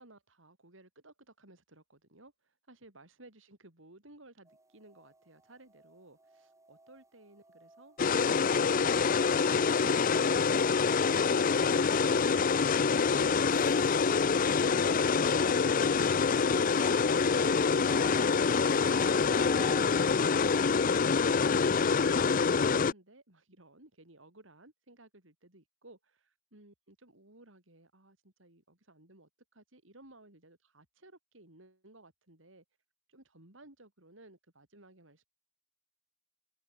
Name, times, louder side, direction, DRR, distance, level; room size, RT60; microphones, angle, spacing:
voice 1, 0.0-12.7 19.0-32.6 33.1-35.3, right 2 dB, 80° right, 5.4 m, -58 dB
sound 1, 4.5-20.7, right 2 dB, 15° right, 2.7 m, -52 dB
sound 2, 8.0-22.9, left 5 dB, 45° left, 0.5 m, -26 dB
sound 3, 13.4-16.7, left 5 dB, 15° left, 6.2 m, -66 dB
head